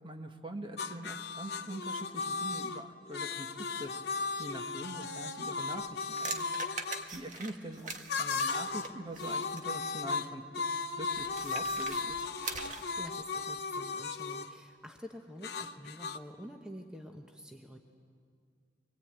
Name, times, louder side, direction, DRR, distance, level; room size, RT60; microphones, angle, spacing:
voice 1, 0.0-6.5 7.1-10.4 11.0-12.3, right 1 dB, 25° right, 5 dB, 1.3 m, -44 dB
sound 1, 0.8-7.1 8.1-8.9 9.2-14.5 15.4-16.2, left 4 dB, 55° left, 0.8 m, -36 dB
sound 2, 5.7-9.7 11.1-13.0, right 4 dB, 40° right, 1.6 m, -43 dB
voice 2, 13.0-17.8, equal, 5° right, 2 dB, 1.0 m, -48 dB
24.5 x 20.5 x 8.9 m, 2.3 s
head